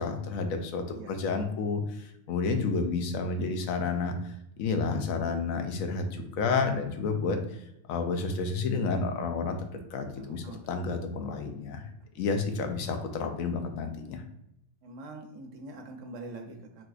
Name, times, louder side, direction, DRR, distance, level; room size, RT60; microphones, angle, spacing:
voice 1, 0.0-11.9 12.1-14.2, left 4 dB, 90° left, 6 dB, 1.0 m, -30 dB
voice 2, 10.2-10.6 14.8-16.9, right 2 dB, 70° right, 3 dB, 1.0 m, -44 dB
4.1 x 2.8 x 2.3 m, 0.80 s
omnidirectional pair, 1.4 m